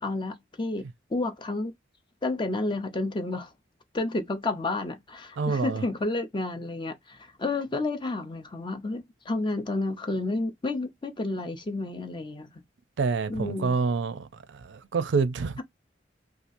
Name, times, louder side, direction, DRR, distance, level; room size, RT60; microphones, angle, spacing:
voice 1, 0.0-1.7 2.2-3.5 3.9-12.5 13.3-13.8, left 2 dB, 25° left, 0.6 m, -31 dB
voice 2, 5.4-5.8 13.0-15.6, right 4 dB, 70° right, 0.4 m, -27 dB
2.8 x 2.4 x 2.5 m
head